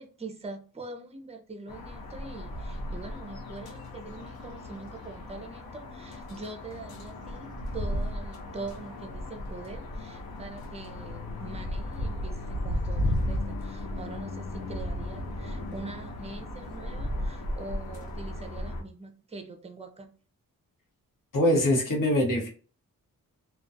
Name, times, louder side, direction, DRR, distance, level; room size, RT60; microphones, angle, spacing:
voice 1, 0.0-20.1, right 3 dB, 20° right, 5 dB, 0.5 m, -43 dB
sound 1, 1.7-18.8, left 1 dB, 85° left, 0.6 m, -35 dB
voice 2, 21.3-22.5, left 1 dB, 60° left, -1 dB, 1.0 m, -23 dB
2.3 x 2.2 x 2.5 m, 0.40 s
cardioid pair, 75°, 36 cm